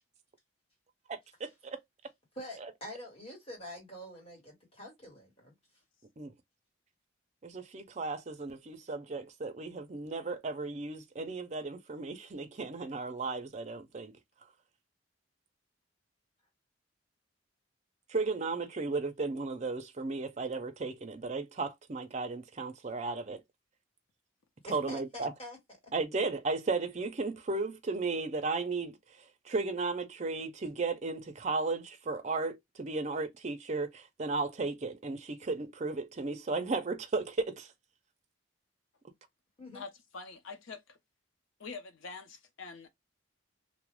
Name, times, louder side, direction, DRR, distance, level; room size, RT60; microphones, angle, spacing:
voice 1, 1.1-1.8 6.2-6.3 7.4-14.1 18.1-23.4 24.7-25.3 25.9-29.0 29.4-37.7, right 3 dB, 35° right, 0.5 m, -35 dB
voice 2, 2.3-5.5 24.6-25.6 39.6-39.8, left 1 dB, 30° left, 1.4 m, -45 dB
voice 3, 39.7-41.0 41.6-42.9, left 4 dB, 85° left, 0.6 m, -45 dB
2.4 x 2.1 x 3.0 m
head